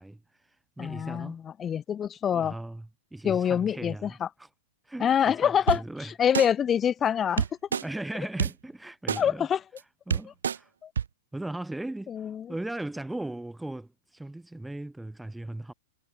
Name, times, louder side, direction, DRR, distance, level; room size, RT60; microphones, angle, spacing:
voice 1, 0.0-1.4 2.3-4.5 4.8-6.1 7.7-9.5 10.1-10.7 11.3-15.7, right 1 dB, 5° right, 4.4 m, -38 dB
voice 2, 0.8-2.5 3.2-4.3 5.0-7.5 9.2-9.6 10.8-10.9 12.1-12.5, left 8 dB, 25° left, 1.9 m, -26 dB
sound 1, 5.7-5.8 6.3-6.5 7.4-7.8 8.4-8.5 9.1-9.2 9.8-9.9 10.1-10.6 11.0-11.1, right 7 dB, 80° right, 1.6 m, -26 dB
hypercardioid pair, 110°, 0 cm